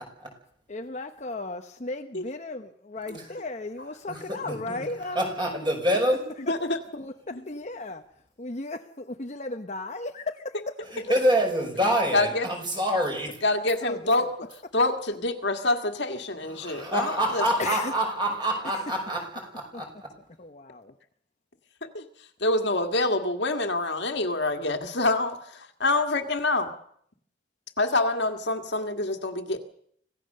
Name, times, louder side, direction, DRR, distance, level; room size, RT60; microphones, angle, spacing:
voice 1, 0.7-6.0 7.0-8.0 8.4-10.8 13.8-14.3 17.6-17.9 18.6-18.8 19.7-19.8 20.4-20.9, left 2 dB, 35° left, 1.0 m, -36 dB
voice 2, 4.4-4.8 5.2-6.2 11.1-13.3 16.4-19.9, equal, 25° right, 5.5 m, -26 dB
voice 3, 6.5-6.8 7.3-7.4 12.1-12.5 13.4-14.3 14.7-17.4 21.8-22.1 22.4-26.7 27.8-29.6, left 2 dB, 60° left, 1.9 m, -26 dB
26.0 x 16.5 x 6.7 m
head